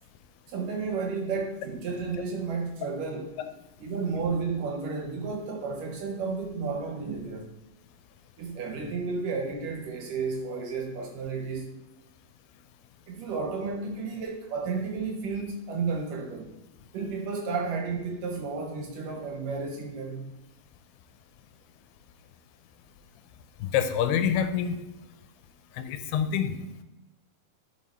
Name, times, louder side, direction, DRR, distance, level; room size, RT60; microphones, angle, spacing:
voice 1, 0.5-3.4 3.8-7.5 8.4-11.7 13.1-16.5 16.9-20.3, right 4 dB, 70° right, 2.2 m, -32 dB
voice 2, 23.6-24.8 25.8-26.5, left 8 dB, 85° left, 2.7 m, -26 dB
11.0 x 5.0 x 4.3 m
omnidirectional pair, 4.5 m